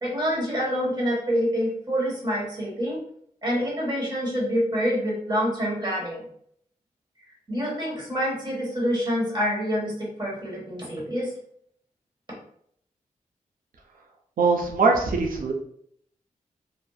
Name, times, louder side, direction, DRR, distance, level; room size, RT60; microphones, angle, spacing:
voice 1, 0.0-3.0 3.4-6.2 7.5-11.3, equal, 30° right, -4 dB, 1.2 m, -26 dB
voice 2, 14.4-15.5, right 4 dB, 75° right, 1 dB, 0.6 m, -21 dB
2.6 x 2.0 x 2.3 m, 0.66 s
cardioid pair, 65°, 14 cm